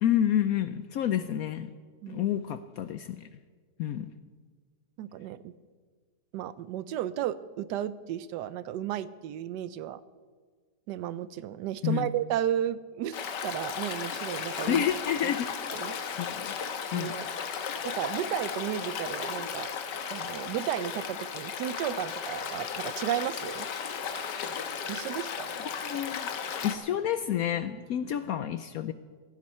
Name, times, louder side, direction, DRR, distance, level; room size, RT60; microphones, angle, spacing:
voice 1, 0.0-1.7 2.1-3.3 3.8-4.1 11.8-12.1 14.7-15.5 16.2-16.4 16.9-17.1 25.8-26.3 26.6-28.9, left 10 dB, 70° left, 11 dB, 0.9 m, -29 dB
voice 2, 5.0-5.5 6.3-10.0 10.9-14.8 15.7-16.2 16.9-17.3 17.8-19.7 20.1-23.7 24.9-25.5, right 11 dB, 80° right, 16 dB, 1.2 m, -33 dB
Stream, 13.1-26.8, left 7 dB, 85° left, 1.6 m, -35 dB
15.5 x 15.5 x 4.3 m, 1.5 s
omnidirectional pair, 1.8 m